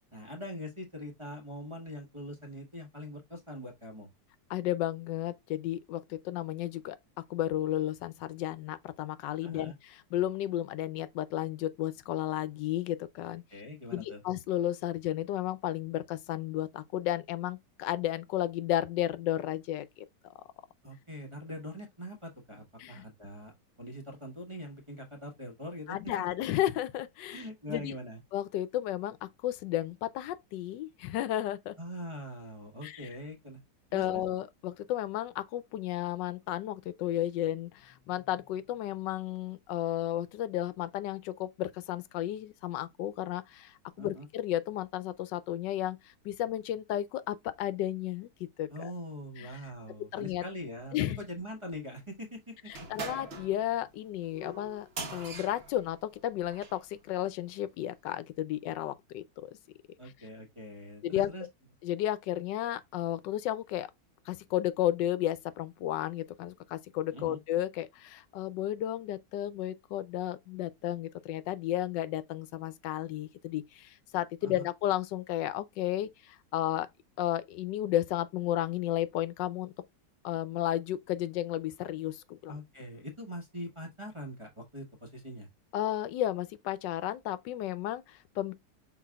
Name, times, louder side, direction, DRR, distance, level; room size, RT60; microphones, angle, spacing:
voice 1, 0.1-4.1 9.4-9.7 13.5-14.2 20.8-26.0 27.3-28.2 31.8-33.6 33.9-34.2 44.0-44.3 48.7-52.7 60.0-61.5 67.1-67.4 74.4-74.6 82.5-85.5, equal, 20° right, 1.0 m, -43 dB
voice 2, 4.5-7.0 7.3-13.4 13.9-20.1 22.8-23.0 25.9-27.9 28.3-31.7 32.8-33.1 33.9-46.0 46.2-48.9 49.4-49.5 50.1-50.4 50.9-51.2 52.9-59.2 61.0-61.3 61.8-63.9 64.3-76.9 77.2-79.7 80.2-82.6 85.7-88.5, left 13 dB, 85° left, 1.2 m, -33 dB
sound 1, 52.7-56.8, right 3 dB, 40° right, 1.2 m, -42 dB
5.8 x 4.0 x 2.3 m
omnidirectional pair, 1.9 m